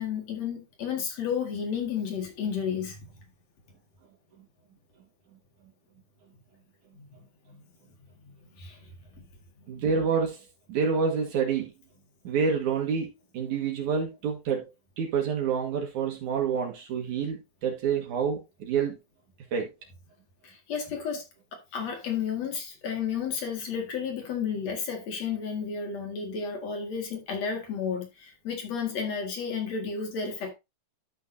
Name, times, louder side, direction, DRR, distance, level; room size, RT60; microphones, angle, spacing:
voice 1, 0.0-3.0 7.0-7.1 8.6-8.7 20.7-21.2 21.7-28.1 28.4-30.5, left 6 dB, 65° left, 3.1 m, -32 dB
voice 2, 9.7-11.7 12.2-14.6 15.0-19.0 19.5-19.7, right 6 dB, 80° right, 3.1 m, -28 dB
12.5 x 6.1 x 2.7 m
omnidirectional pair, 3.4 m